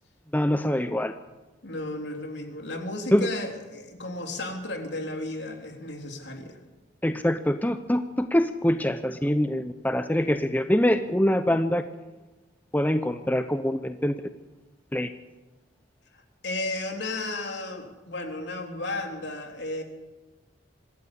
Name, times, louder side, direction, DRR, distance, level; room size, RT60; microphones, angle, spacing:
voice 1, 0.3-1.1 3.1-3.3 7.0-11.8 12.7-14.1 14.9-15.1, left 1 dB, 10° left, 9 dB, 0.7 m, -24 dB
voice 2, 1.6-6.6 16.4-19.8, left 2 dB, 65° left, 3 dB, 3.5 m, -34 dB
25.5 x 12.5 x 8.5 m, 1.1 s
head